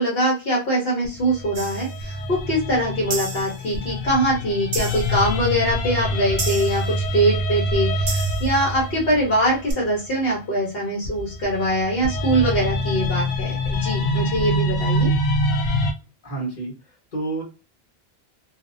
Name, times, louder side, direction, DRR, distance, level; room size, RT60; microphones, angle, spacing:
voice 1, 0.0-6.8 7.1-15.1, right 1 dB, 65° left, -4 dB, 1.1 m, -23 dB
sound 1, 1.1-10.2 11.1-15.9, equal, 90° left, 0.8 m, -25 dB
sound 2, 1.5-1.9 3.1-3.6 4.7-5.2 6.4-6.9 8.1-8.5 9.7-9.8, right 4 dB, 50° right, 0.6 m, -31 dB
voice 2, 16.2-16.7 17.1-17.4, right 3 dB, 45° left, -2 dB, 1.2 m, -28 dB
2.6 x 2.1 x 2.5 m, 0.31 s
omnidirectional pair, 1.1 m